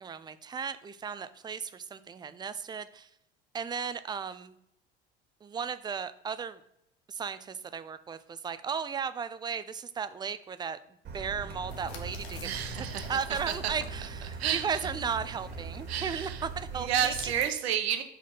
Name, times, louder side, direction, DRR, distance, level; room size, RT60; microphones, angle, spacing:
voice 1, 0.0-3.1 3.5-4.6 5.4-6.6 7.1-10.8 11.1-12.5 12.8-17.1, right 6 dB, 15° right, 13 dB, 0.4 m, -35 dB
Car, 11.0-17.4, right 4 dB, 30° right, 1.8 m, -41 dB
sound 1, 11.7-17.5, left 5 dB, 65° left, 1.3 m, -47 dB
voice 2, 12.4-13.1 14.4-14.6 15.9-16.4 16.8-18.0, right 9 dB, 75° right, 7 dB, 0.9 m, -30 dB
4.8 x 4.2 x 5.4 m, 0.79 s
figure-of-eight pair, 70°, 32 cm